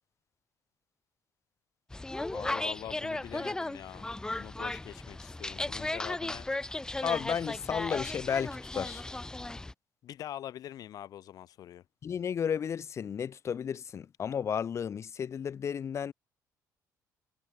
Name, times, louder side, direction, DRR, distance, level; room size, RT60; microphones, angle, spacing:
sound 1, 1.9-9.7, left 2 dB, 10° left, 0.5 m, -36 dB
voice 1, 2.3-4.1 4.4-6.5 10.0-11.8, left 11 dB, 65° left, 2.3 m, -44 dB
voice 2, 7.0-9.0 12.0-16.1, left 7 dB, 45° left, 1.5 m, -33 dB
cardioid pair, 110°, 7 cm